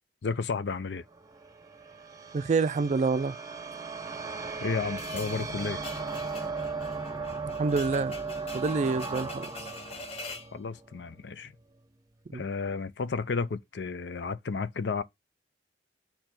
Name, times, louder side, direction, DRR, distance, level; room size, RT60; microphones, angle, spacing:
voice 1, 0.2-1.0 4.6-5.8 10.5-11.5 12.3-15.0, left 4 dB, 70° left, 0.5 m, -32 dB
sound 1, 1.1-11.4, right 4 dB, 20° right, 0.8 m, -37 dB
voice 2, 2.3-3.4 7.6-8.1 8.5-9.4 12.3-12.4, right 4 dB, 40° right, 0.4 m, -27 dB
sound 2, 5.0-10.5, left 3 dB, 35° left, 0.9 m, -44 dB
6.7 x 2.9 x 5.8 m
head